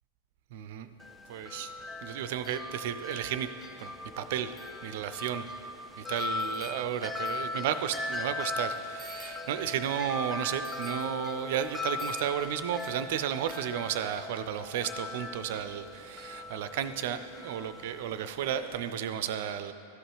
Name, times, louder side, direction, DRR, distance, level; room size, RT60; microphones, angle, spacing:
voice 1, 0.5-0.9 1.3-1.7 2.0-3.5 3.8-4.5 4.8-5.5 6.0-19.7, right 9 dB, 50° right, 12 dB, 0.4 m, -33 dB
Wind chime, 1.0-18.9, left 2 dB, 10° left, 0.5 m, -39 dB
12.5 x 5.1 x 4.8 m, 2.6 s
figure-of-eight pair, 90°, 0 cm